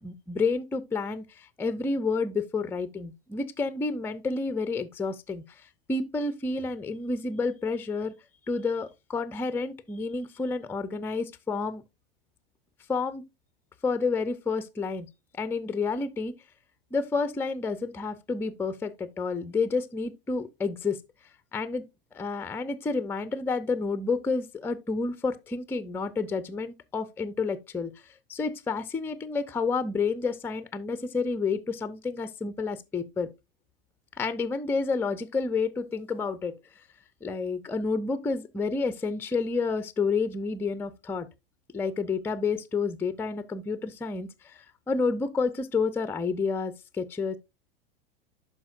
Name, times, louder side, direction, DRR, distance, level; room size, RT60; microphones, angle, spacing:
voice 1, 0.0-8.1 8.5-11.8 12.9-13.2 13.8-15.1 15.4-16.3 16.9-21.0 21.5-21.8 22.1-33.3 34.2-36.6 37.2-41.3 41.7-47.4, left 4 dB, 5° left, 0.5 m, -30 dB
12.0 x 4.5 x 2.5 m
hypercardioid pair, 90°, 29 cm